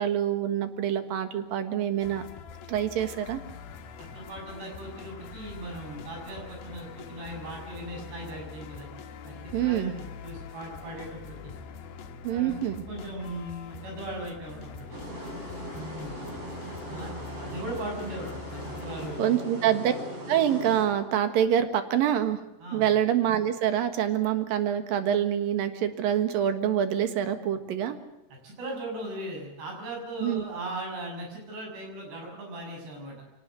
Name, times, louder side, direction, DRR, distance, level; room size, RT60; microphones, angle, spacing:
voice 1, 0.0-2.2 2.7-3.4 9.5-9.9 12.2-12.8 19.2-19.9 20.3-22.4 22.7-28.0 30.2-30.5, right 10 dB, 65° right, 9 dB, 3.2 m, -26 dB
sound 1, 2.0-19.2, left 6 dB, 70° left, 3.2 m, -44 dB
voice 2, 4.0-8.9 9.2-11.6 12.3-12.5 12.9-15.0 15.7-16.1 16.9-19.5 22.6-22.9 28.4-33.2, right 1 dB, 85° right, 1 dB, 8.8 m, -38 dB
sound 2, 14.9-20.9, right 1 dB, 35° right, 5.7 m, -39 dB
23.5 x 19.0 x 7.7 m, 0.97 s
omnidirectional pair, 4.6 m